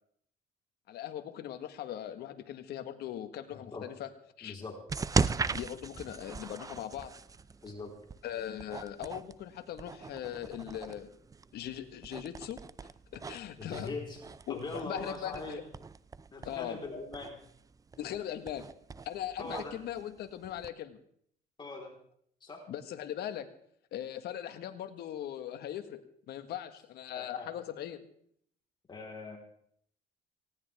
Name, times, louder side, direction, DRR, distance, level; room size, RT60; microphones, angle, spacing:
voice 1, 0.9-4.1 4.4-4.5 5.5-7.1 8.2-11.1 11.5-12.6 13.1-13.9 14.5-15.6 16.4-16.8 18.0-18.7 19.0-21.0 22.7-23.5 23.9-28.0, left 11 dB, 70° left, 9 dB, 1.6 m, -40 dB
voice 2, 4.4-4.7 7.6-7.9 13.6-14.2 14.5-15.6 16.3-17.4 19.4-19.7 21.6-21.9 22.4-22.6 27.1-27.5 28.9-29.4, left 3 dB, 25° left, 0 dB, 4.0 m, -41 dB
sound 1, 4.9-20.7, right 5 dB, 20° right, 0.5 m, -39 dB
18.5 x 17.5 x 3.5 m, 0.65 s
cardioid pair, 110°, 17 cm